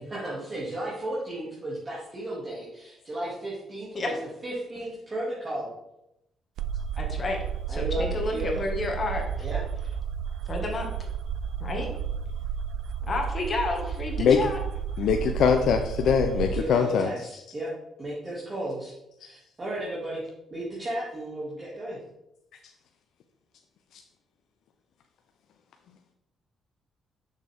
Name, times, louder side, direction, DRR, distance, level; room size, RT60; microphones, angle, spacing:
voice 1, 0.0-4.1 4.4-5.7 7.7-8.6 9.4-9.6 16.3-17.7 18.0-18.9 19.2-20.2 20.5-22.0, right 1 dB, 30° right, -7 dB, 2.2 m, -34 dB
sound 1, 6.6-16.6, right 7 dB, 80° right, 0.4 m, -32 dB
voice 2, 7.0-7.4 7.7-9.3 10.5-10.9 11.6-11.9 13.1-14.6, left 2 dB, 40° left, 2 dB, 1.7 m, -30 dB
voice 3, 15.0-17.1, left 7 dB, 75° left, 5 dB, 0.5 m, -22 dB
6.4 x 6.4 x 3.5 m, 0.84 s
cardioid pair, 90°, 0 cm